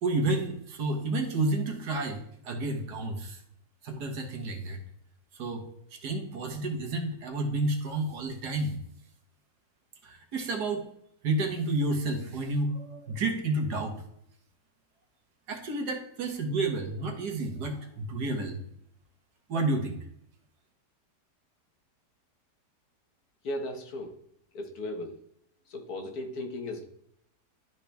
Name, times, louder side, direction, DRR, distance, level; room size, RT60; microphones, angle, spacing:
voice 1, 0.0-3.4 3.8-4.8 5.3-5.6 5.9-8.8 10.0-10.8 11.2-14.0 15.5-18.6 19.5-20.0, right 2 dB, 70° right, 3 dB, 1.8 m, -30 dB
voice 2, 23.4-24.1 24.5-25.2 25.7-26.8, left 1 dB, 65° left, 3 dB, 1.6 m, -36 dB
12.0 x 4.1 x 3.4 m, 0.74 s
omnidirectional pair, 1.8 m